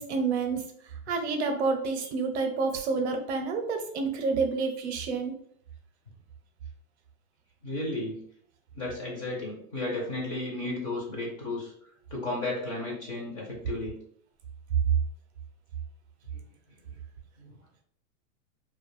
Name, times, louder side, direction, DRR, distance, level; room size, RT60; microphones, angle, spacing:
voice 1, 0.0-5.3, right 4 dB, 55° right, 5 dB, 0.6 m, -29 dB
voice 2, 7.6-8.2 8.7-11.7 12.1-14.0 16.3-16.4 17.4-17.6, left 2 dB, 25° left, -2 dB, 0.4 m, -33 dB
2.3 x 2.2 x 3.0 m, 0.63 s
supercardioid pair, 155°, 41 cm